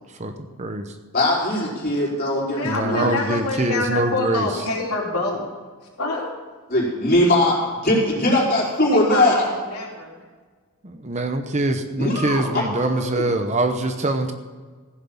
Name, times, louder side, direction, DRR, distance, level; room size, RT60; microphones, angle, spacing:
voice 1, 0.6-1.0 2.6-4.6 7.0-7.1 10.8-14.3, right 2 dB, 30° right, 7 dB, 0.8 m, -24 dB
voice 2, 1.1-3.2 6.7-9.5 12.0-13.3, left 1 dB, 40° left, -5 dB, 4.6 m, -21 dB
voice 3, 2.5-5.4 6.0-6.3 8.8-10.1, left 3 dB, 90° left, -3 dB, 3.5 m, -26 dB
15.5 x 7.4 x 7.2 m, 1.5 s
head